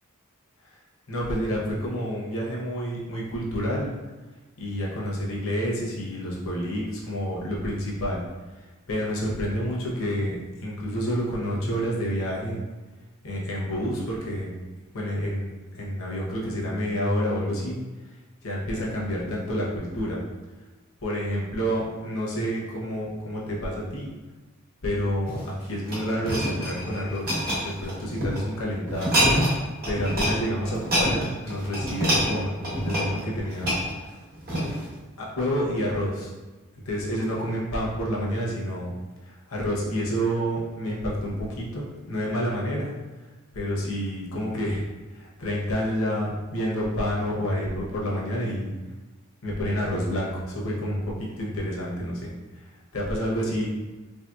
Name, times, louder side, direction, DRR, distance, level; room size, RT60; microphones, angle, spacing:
voice 1, 1.1-3.9 4.6-8.2 8.9-12.6 13.2-14.5 14.9-17.8 18.4-20.2 21.0-24.1 24.8-29.1 29.9-33.7 35.2-36.3 36.8-38.9 39.5-42.9 43.5-48.7 49.4-52.3 52.9-53.7, equal, 75° left, -4 dB, 0.8 m, -29 dB
sound 1, 25.3-28.4 28.9-29.6 29.8-30.3 30.6-34.9 35.5-35.6, equal, 45° right, 1.0 m, -26 dB
3.1 x 2.7 x 2.3 m, 1.2 s
head